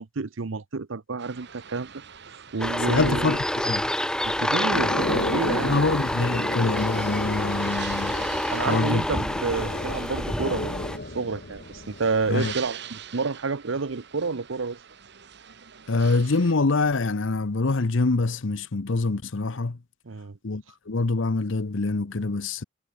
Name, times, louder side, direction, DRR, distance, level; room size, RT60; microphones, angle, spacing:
voice 1, 0.0-1.9 2.5-3.4 4.2-5.8 8.5-14.8 20.1-20.4, right 4 dB, 75° right, 0.8 m, -29 dB
sound 1, 1.2-16.5, right 8 dB, 60° right, 1.7 m, -45 dB
sound 2, 2.6-11.0, left 1 dB, 5° left, 0.9 m, -28 dB
voice 2, 2.9-3.8 5.6-8.2 8.7-9.2 12.3-12.5 15.9-19.8 20.4-22.6, left 3 dB, 70° left, 0.8 m, -25 dB
sound 3, 4.7-12.5, left 2 dB, 55° left, 1.8 m, -33 dB
head